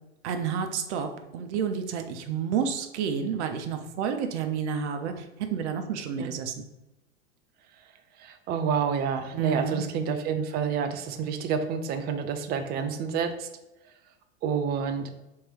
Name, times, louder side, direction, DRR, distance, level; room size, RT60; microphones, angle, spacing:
voice 1, 0.2-6.6 9.3-9.8, right 7 dB, 60° right, 6 dB, 0.7 m, -30 dB
voice 2, 8.2-13.5 14.4-15.1, right 6 dB, 25° right, 8 dB, 0.4 m, -29 dB
3.6 x 3.1 x 4.5 m, 0.93 s
figure-of-eight pair, 85°, 40 cm